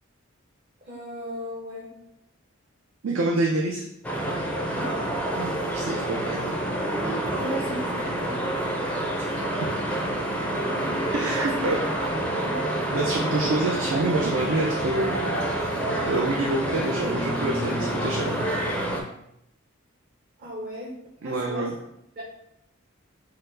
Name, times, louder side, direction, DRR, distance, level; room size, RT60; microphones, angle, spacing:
voice 1, 0.8-1.9 4.7-5.0 7.4-8.3 11.4-11.5 12.3-12.5 20.4-20.9 21.2-21.7 22.2-22.3, left 1 dB, 45° right, -6 dB, 0.8 m, -36 dB
voice 2, 3.0-3.8 5.4-6.5 9.6-9.7 11.1-11.8 12.9-18.4 21.2-21.7, right 2 dB, 70° right, -1 dB, 0.5 m, -27 dB
sound 1, 4.0-19.0, right 1 dB, 5° left, 0.4 m, -28 dB
4.4 x 2.0 x 3.8 m, 0.78 s
head